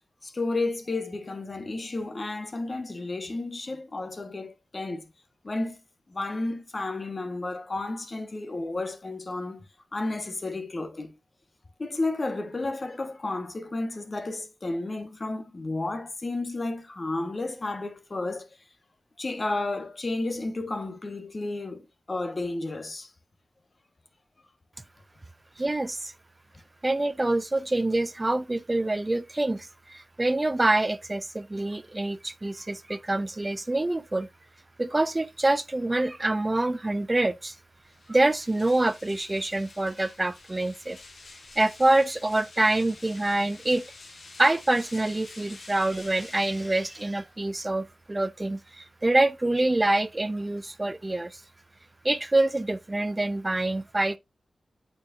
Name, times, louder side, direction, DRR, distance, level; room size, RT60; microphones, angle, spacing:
voice 1, 0.2-5.1 5.4-5.8 6.1-9.7 9.9-11.2 11.8-18.6 19.2-23.1, left 2 dB, 40° left, 1.2 m, -32 dB
voice 2, 25.6-26.1 26.8-34.3 34.8-37.5 38.1-41.0 41.5-43.8 44.4-51.4 52.0-54.2, right 2 dB, 25° right, 0.4 m, -26 dB
sound 1, 37.8-47.5, left 3 dB, 60° left, 1.3 m, -49 dB
8.4 x 4.6 x 2.5 m
cardioid pair, 60°, 0 cm